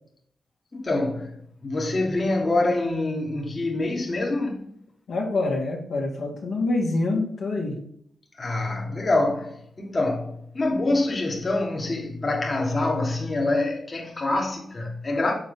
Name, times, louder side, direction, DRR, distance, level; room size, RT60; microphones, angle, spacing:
voice 1, 0.7-4.7 8.4-15.3, left 2 dB, 40° left, 1.6 m, -26 dB
voice 2, 5.1-7.8, left 2 dB, 70° left, 1.7 m, -26 dB
5.8 x 4.2 x 5.3 m
supercardioid pair, 45°, 0 cm